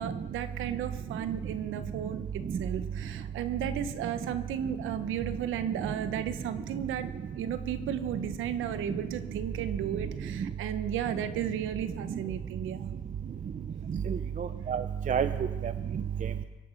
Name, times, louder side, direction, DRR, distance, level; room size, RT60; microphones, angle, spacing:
voice 1, 0.0-7.1 7.3-12.9, right 9 dB, 85° right, 11 dB, 1.1 m, -34 dB
voice 2, 14.1-15.3 15.6-16.3, right 8 dB, 40° right, 10 dB, 0.6 m, -30 dB
24.0 x 8.6 x 5.9 m, 1.3 s
cardioid pair, 90°, 20 cm